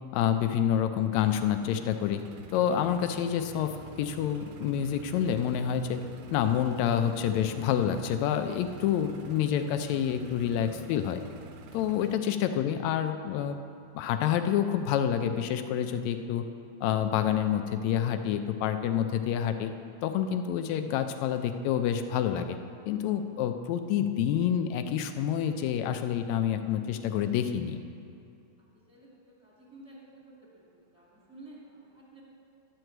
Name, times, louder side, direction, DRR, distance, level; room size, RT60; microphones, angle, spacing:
voice 1, 0.1-2.2 2.5-6.0 6.3-11.2 11.7-13.6 14.0-16.5 16.8-19.7 20.0-22.6 22.9-27.8, left 9 dB, 80° left, 8 dB, 1.8 m, -28 dB
sound 1, 1.1-12.1, right 4 dB, 80° right, 1.3 m, -47 dB
voice 2, 28.9-32.2, right 2 dB, ahead, -5 dB, 1.8 m, -52 dB
11.5 x 4.7 x 7.8 m, 2.6 s
omnidirectional pair, 3.3 m